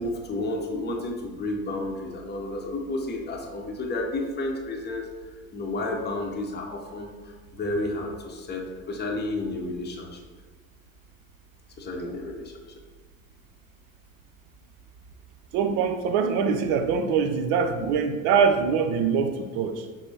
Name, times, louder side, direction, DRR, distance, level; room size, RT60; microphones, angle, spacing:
voice 1, 0.0-5.0 5.5-7.1 7.5-10.2 11.8-12.5, left 2 dB, 25° left, 1 dB, 0.7 m, -31 dB
voice 2, 15.5-19.9, right 6 dB, 65° right, 7 dB, 0.5 m, -23 dB
6.0 x 2.0 x 2.8 m, 1.4 s
hypercardioid pair, 60°, 39 cm